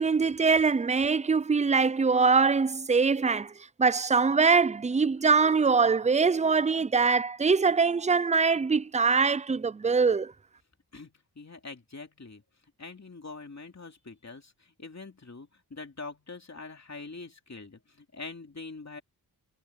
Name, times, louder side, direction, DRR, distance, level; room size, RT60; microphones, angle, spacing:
voice 1, 0.0-3.5 3.8-10.3, right 5 dB, 20° right, 0.4 m, -23 dB
voice 2, 10.9-12.4 12.8-19.0, left 3 dB, 40° left, 2.9 m, -44 dB
wide cardioid pair, 90°, 40 cm